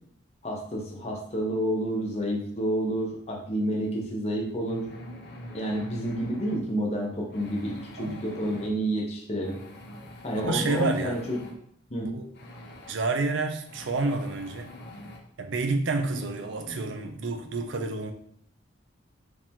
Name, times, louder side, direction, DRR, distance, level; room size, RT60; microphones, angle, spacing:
voice 1, 0.4-4.9 5.5-9.6 10.2-11.4 11.9-12.1, equal, 35° left, -1 dB, 1.1 m, -29 dB
sound 1, 4.7-6.6 7.3-8.7 9.4-11.5 12.3-12.9 13.7-15.2 15.9-17.1, left 1 dB, 55° left, 0.8 m, -44 dB
voice 2, 8.0-8.4 10.3-11.2 12.1-12.2 12.9-14.7 15.4-18.1, right 3 dB, 70° right, 6 dB, 0.6 m, -29 dB
4.9 x 2.9 x 3.6 m, 0.66 s
head